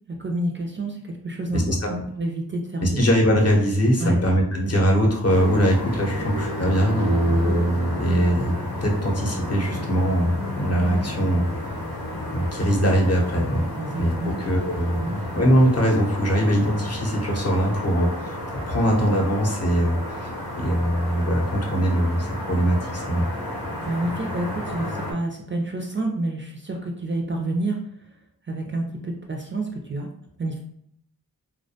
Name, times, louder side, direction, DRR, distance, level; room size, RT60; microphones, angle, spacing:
voice 1, 0.1-3.1 4.0-4.2 13.8-14.4 15.0-15.2 23.9-27.8 28.5-30.1 30.4-30.6, right 2 dB, 30° right, 1 dB, 0.4 m, -28 dB
voice 2, 1.5-1.9 2.8-8.5 8.8-11.4 12.3-13.6 14.0-14.1 14.4-23.3, equal, 40° left, 0 dB, 0.7 m, -22 dB
sound 1, 5.3-25.1, left 1 dB, 90° left, 0.7 m, -31 dB
2.3 x 2.1 x 2.7 m, 0.69 s
wide cardioid pair, 50°, 38 cm